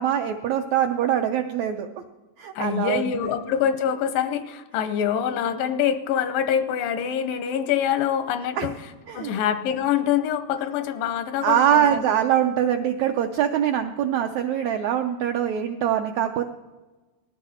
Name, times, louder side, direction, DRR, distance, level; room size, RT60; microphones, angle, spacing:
voice 1, 0.0-1.9 2.4-3.2 8.6-8.7 9.1-9.3 11.4-16.4, right 10 dB, 85° right, 6 dB, 1.6 m, -23 dB
voice 2, 2.6-8.7 9.1-12.1, left 9 dB, 90° left, 10 dB, 2.5 m, -25 dB
19.0 x 14.0 x 4.3 m, 1.2 s
omnidirectional pair, 3.9 m